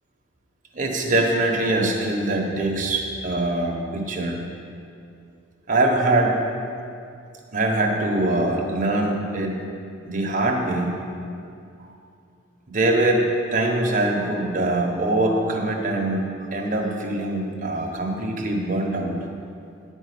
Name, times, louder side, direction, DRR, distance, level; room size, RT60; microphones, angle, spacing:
voice 1, 0.7-4.4 5.7-6.3 7.5-9.6 10.1-10.9 11.8-11.9 12.7-13.2 13.5-19.1, right 2 dB, 45° right, 0 dB, 1.3 m, -23 dB
10.0 x 5.5 x 8.4 m, 2.5 s
head